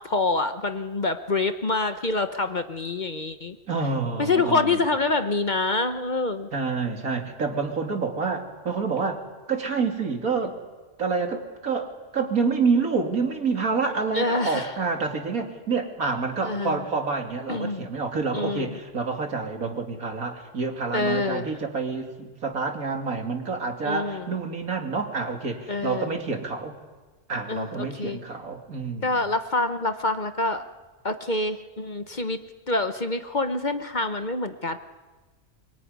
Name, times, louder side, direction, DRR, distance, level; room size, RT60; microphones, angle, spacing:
voice 1, 0.0-3.6 4.2-6.5 14.1-14.7 16.4-16.8 17.5-17.9 18.3-18.8 20.9-21.5 23.8-24.3 25.7-26.1 27.5-28.2 29.0-30.6 31.0-32.4 32.7-34.8, left 3 dB, 35° left, 9 dB, 1.0 m, -26 dB
voice 2, 3.7-4.8 6.5-9.2 9.5-10.6 11.0-26.8 27.3-29.2, right 4 dB, 90° right, 3 dB, 3.0 m, -28 dB
23.5 x 23.0 x 9.5 m, 1.3 s
omnidirectional pair, 1.4 m